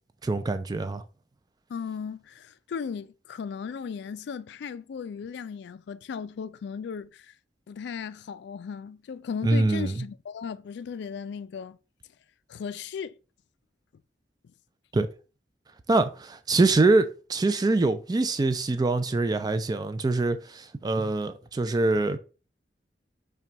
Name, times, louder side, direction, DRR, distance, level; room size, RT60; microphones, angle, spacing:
voice 1, 0.2-1.0 9.4-9.9 14.9-15.1 15.9-22.2, right 2 dB, 20° right, 0.3 m, -24 dB
voice 2, 1.7-7.3 7.7-11.8 12.5-13.1, left 6 dB, 65° left, 0.3 m, -36 dB
5.8 x 2.3 x 3.9 m
head